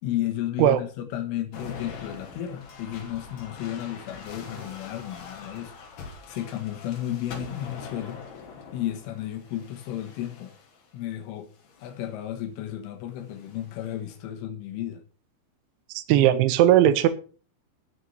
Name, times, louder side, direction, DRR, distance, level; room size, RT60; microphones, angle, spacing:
voice 1, 0.0-5.7 6.0-8.2 8.7-10.5 10.9-11.5 11.8-15.0, left 12 dB, 80° left, 3.8 m, -33 dB
sound 1, 1.5-10.9 11.6-12.1 13.2-13.9, left 5 dB, 60° left, 4.5 m, -43 dB
voice 2, 15.9-17.1, right 12 dB, 80° right, 3.2 m, -18 dB
12.5 x 6.4 x 7.0 m
omnidirectional pair, 5.6 m